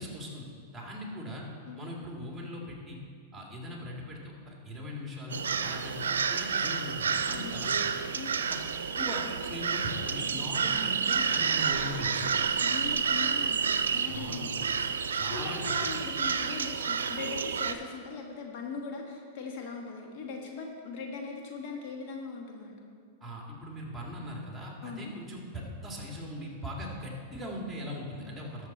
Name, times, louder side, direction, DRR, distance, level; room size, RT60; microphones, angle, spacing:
voice 1, 0.0-1.4 1.8-3.0 3.3-7.9 8.5-8.6 8.9-12.4 14.1-14.7 15.1-15.8 23.2-28.7, equal, 5° right, -2 dB, 2.3 m, -40 dB
sound 1, 5.3-17.7, right 6 dB, 90° right, 0.5 m, -30 dB
voice 2, 7.3-7.7 8.1-8.3 12.6-14.5 14.9-22.9 24.8-25.1, left 4 dB, 55° left, 1 dB, 1.4 m, -40 dB
12.5 x 6.6 x 4.2 m, 2.1 s
hypercardioid pair, 115°, 0 cm